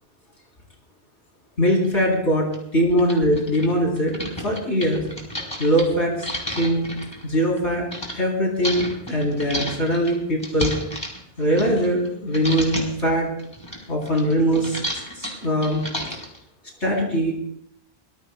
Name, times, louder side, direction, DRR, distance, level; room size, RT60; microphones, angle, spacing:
voice 1, 1.6-2.5 2.7-5.0 5.6-6.1 6.6-6.9 7.2-7.9 8.1-10.7 11.4-13.3 13.9-14.8 15.2-15.8 16.8-17.3, equal, 75° left, -1 dB, 3.9 m, -21 dB
sound 1, 1.8-1.9 2.5-2.6 2.9-8.1 8.6-12.1 12.3-13.0 13.4-16.4, equal, 20° left, 4.3 m, -32 dB
24.5 x 20.0 x 2.3 m, 0.68 s
omnidirectional pair, 1.2 m